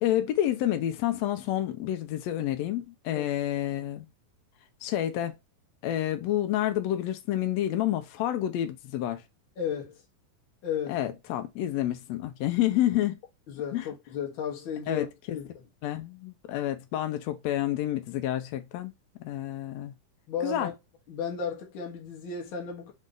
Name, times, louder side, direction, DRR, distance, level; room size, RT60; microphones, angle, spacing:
voice 1, 0.0-4.1 4.8-5.4 5.8-9.2 10.9-13.2 13.7-13.9 14.9-15.4 15.8-18.9 19.2-19.9 20.4-20.7, left 12 dB, 85° left, 1.5 m, -29 dB
voice 2, 9.6-10.0 10.6-11.0 13.5-15.1 15.3-15.5 20.3-20.7 21.1-22.9, left 7 dB, 60° left, 1.4 m, -34 dB
5.3 x 2.5 x 3.8 m
omnidirectional pair, 3.9 m